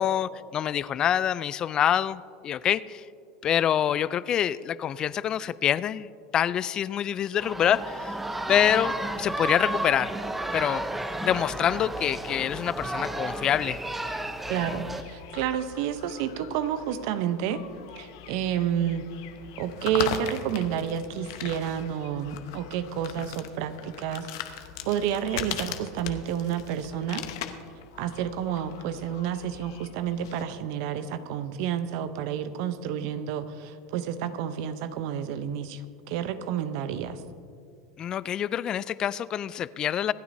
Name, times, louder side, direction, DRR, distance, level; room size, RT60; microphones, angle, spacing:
voice 1, 0.0-3.0 3.4-8.1 8.5-10.1 10.5-10.9 11.2-13.8 38.0-40.1, left 10 dB, 35° left, 18 dB, 0.3 m, -26 dB
sound 1, 7.4-15.0, right 1 dB, 10° right, 0.6 m, -32 dB
sound 2, 11.4-30.4, left 10 dB, 75° left, 0.9 m, -40 dB
voice 2, 14.5-17.6 18.0-19.1 19.6-27.3 28.0-35.8 36.1-37.2, right 9 dB, 65° right, 12 dB, 0.7 m, -30 dB
25.5 x 9.4 x 2.7 m, 2.3 s
supercardioid pair, 110°, 2 cm